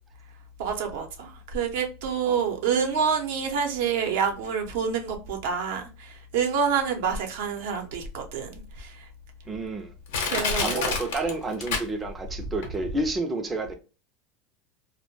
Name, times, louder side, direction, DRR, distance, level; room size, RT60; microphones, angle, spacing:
voice 1, 0.6-8.9 10.2-11.0, right 6 dB, 75° right, 0.6 m, -27 dB
Crushing, 8.0-8.1 8.8-8.9 9.5-9.6 10.1-12.3 12.6-12.7, left 4 dB, 85° left, 0.8 m, -28 dB
voice 2, 9.5-9.9 10.6-13.7, right 2 dB, 15° right, 0.4 m, -30 dB
2.1 x 2.1 x 2.9 m
supercardioid pair, 125°, 0 cm